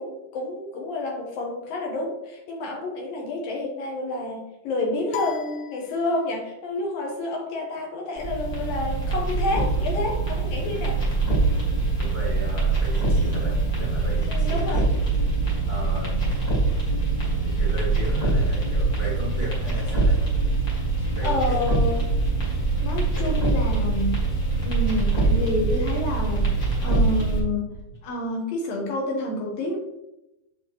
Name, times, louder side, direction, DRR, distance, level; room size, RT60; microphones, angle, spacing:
voice 1, 0.0-11.0 14.3-14.8 21.2-22.0 22.8-24.1 24.6-27.7 28.0-29.8, left 2 dB, 70° left, 0 dB, 2.5 m, -29 dB
sound 1, 5.1-6.6, left 10 dB, 85° left, 2.7 m, -37 dB
sound 2, 8.2-27.4, right 3 dB, 40° left, 1.3 m, -23 dB
voice 2, 12.0-14.9 15.7-16.3 17.4-20.2 21.0-21.8 23.1-23.6 24.5-24.9, right 1 dB, 75° right, -7 dB, 0.5 m, -35 dB
7.3 x 6.9 x 3.0 m, 0.90 s
omnidirectional pair, 4.8 m